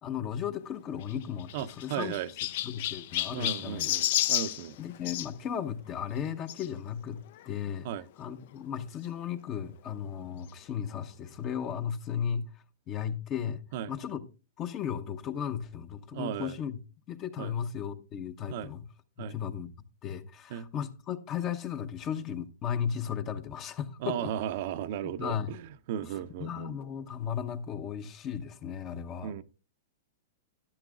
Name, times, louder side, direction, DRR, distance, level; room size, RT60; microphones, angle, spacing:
voice 1, 0.0-2.1 2.6-4.0 4.8-7.9 8.2-12.5 12.9-13.6 13.9-14.2 14.6-16.8 17.1-18.8 19.3-19.7 20.0-24.2 25.0-25.6 26.4-29.3, left 8 dB, 35° left, 0.8 m, -35 dB
Chirp tweet, 1.0-5.3 6.5-6.7 7.4-7.5 7.7-7.8 9.0-9.1, left 13 dB, 60° left, 0.4 m, -31 dB
voice 2, 1.5-2.3 3.3-4.8 7.8-8.0 13.7-13.9 16.1-16.6 17.4-17.5 18.5-18.7 19.2-19.4 20.5-20.7 24.0-26.8 29.2-29.4, right 10 dB, 55° right, 0.6 m, -35 dB
12.0 x 10.5 x 2.4 m
hypercardioid pair, 115°, 0 cm